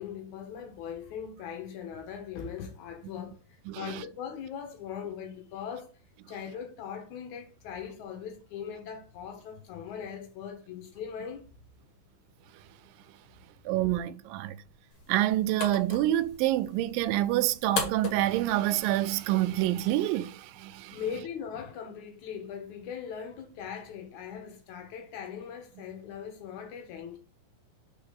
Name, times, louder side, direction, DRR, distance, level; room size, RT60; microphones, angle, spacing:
voice 1, 0.0-3.4 3.8-5.9 6.3-11.4 20.9-27.2, left 7 dB, 70° left, 2.2 m, -40 dB
voice 2, 3.7-4.0 13.7-14.6 15.1-21.0, right 14 dB, 85° right, 2.2 m, -27 dB
sound 1, 14.9-19.9, left 3 dB, 50° left, 1.9 m, -39 dB
4.9 x 4.5 x 5.4 m
omnidirectional pair, 4.0 m